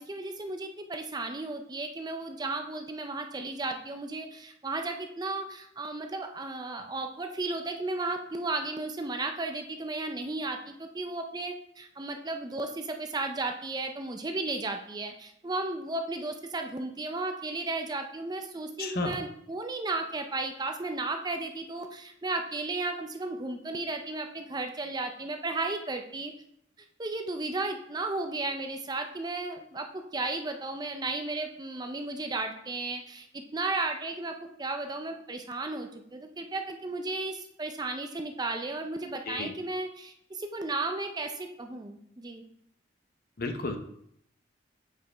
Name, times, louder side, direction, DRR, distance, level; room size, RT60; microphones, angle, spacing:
voice 1, 0.0-26.3 27.0-33.3 33.5-42.4, right 2 dB, 20° right, 5 dB, 0.5 m, -34 dB
voice 2, 18.8-19.1 39.3-39.5 43.4-43.8, left 3 dB, 50° left, 6 dB, 0.7 m, -32 dB
7.9 x 5.0 x 3.4 m, 0.71 s
head